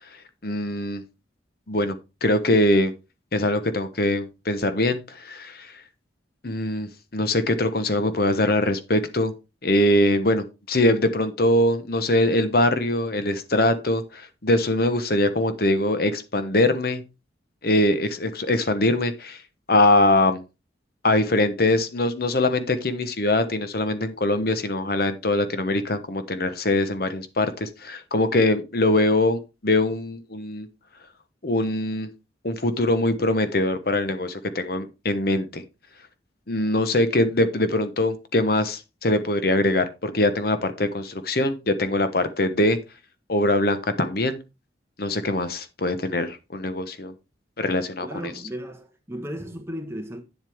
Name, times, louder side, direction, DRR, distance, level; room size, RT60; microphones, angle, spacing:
voice 1, 0.4-1.0 1.7-2.0 2.2-2.9 3.3-5.7 6.4-9.3 9.6-17.0 17.6-19.4 19.7-20.4 21.0-30.7 31.4-32.1 32.4-35.6 36.5-42.8 43.3-44.4 45.0-47.1 47.6-48.3, left 1 dB, 50° left, 1.0 m, -22 dB
voice 2, 48.0-50.2, equal, 15° right, 1.3 m, -35 dB
9.6 x 7.7 x 3.5 m
head